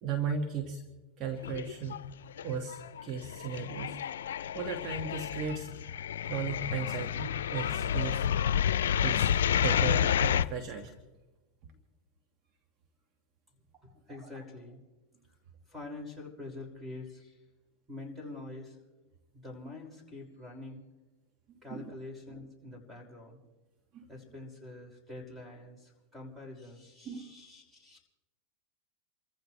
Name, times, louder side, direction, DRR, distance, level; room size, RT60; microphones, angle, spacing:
voice 1, 0.0-0.8 1.2-2.0 2.4-5.7 6.3-8.3 9.0-9.3 9.6-10.9 14.1-14.2 21.7-21.9 23.9-24.1 27.1-27.3, right 5 dB, 45° right, 4 dB, 1.8 m, -36 dB
sound 1, 1.4-2.1 2.4-10.5, left 9 dB, 80° left, 0.5 m, -30 dB
voice 2, 13.9-14.8 15.7-17.4 17.9-18.8 19.3-20.8 21.6-23.4 24.1-28.0, left 2 dB, 5° right, 0 dB, 5.7 m, -45 dB
29.0 x 15.0 x 3.3 m, 1.1 s
hypercardioid pair, 110°, 0 cm